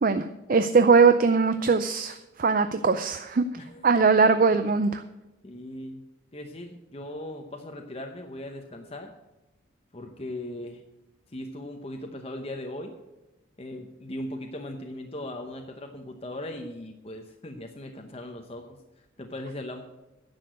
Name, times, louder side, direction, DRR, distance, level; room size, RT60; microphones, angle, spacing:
voice 1, 0.0-3.5 3.8-5.0, right 4 dB, 40° right, 10 dB, 0.4 m, -21 dB
voice 2, 5.4-6.1 6.3-9.1 9.9-10.8 11.3-12.9 13.6-18.7 19.2-19.8, left 1 dB, 30° left, 3 dB, 0.8 m, -38 dB
10.0 x 6.8 x 7.7 m, 1.0 s
head